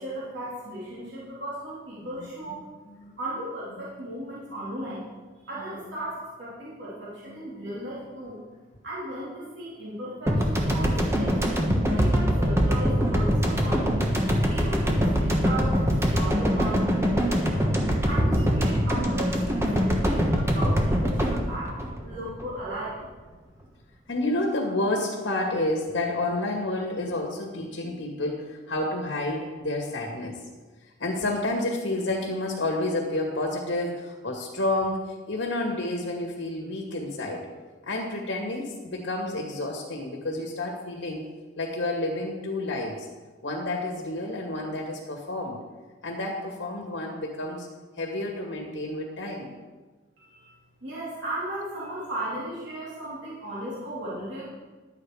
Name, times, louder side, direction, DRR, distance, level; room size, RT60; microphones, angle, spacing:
voice 1, 0.0-2.6 3.2-5.1 5.3-8.4 8.8-11.4 11.8-14.1 14.5-23.0 50.2-50.5 50.8-54.5, right 1 dB, 60° right, -8 dB, 3.7 m, -36 dB
sound 1, 10.3-22.7, equal, 15° right, 1.3 m, -23 dB
voice 2, 24.1-30.4 31.0-37.5 37.8-41.2 41.6-43.1 43.4-45.6 46.0-47.7 48.0-49.5, left 2 dB, 70° left, 0 dB, 2.0 m, -30 dB
11.5 x 8.8 x 4.9 m, 1.3 s
head